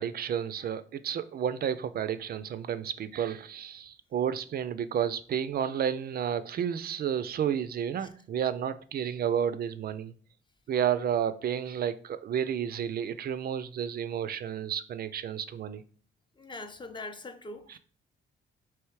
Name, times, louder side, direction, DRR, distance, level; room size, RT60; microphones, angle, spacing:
voice 1, 0.0-10.1 10.7-15.8, right 9 dB, 50° right, 0.4 m, -31 dB
voice 2, 16.4-17.8, left 2 dB, 25° left, 0.5 m, -42 dB
3.4 x 3.1 x 4.7 m
cardioid pair, 90°, 20 cm